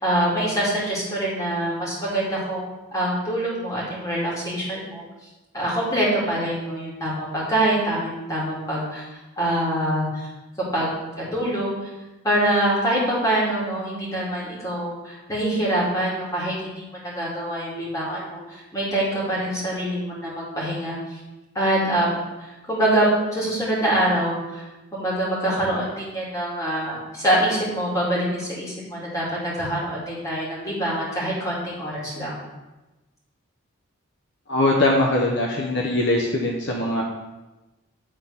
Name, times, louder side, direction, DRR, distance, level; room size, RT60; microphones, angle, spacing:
voice 1, 0.0-5.0 5.5-9.1 9.4-10.3 10.6-10.9 11.3-11.7 12.2-21.2 21.5-22.1 22.6-24.6 24.9-32.3, right 1 dB, 15° left, -6 dB, 2.4 m, -25 dB
voice 2, 34.5-37.0, left 1 dB, 55° left, -1 dB, 0.8 m, -21 dB
8.8 x 4.0 x 5.7 m, 1.1 s
head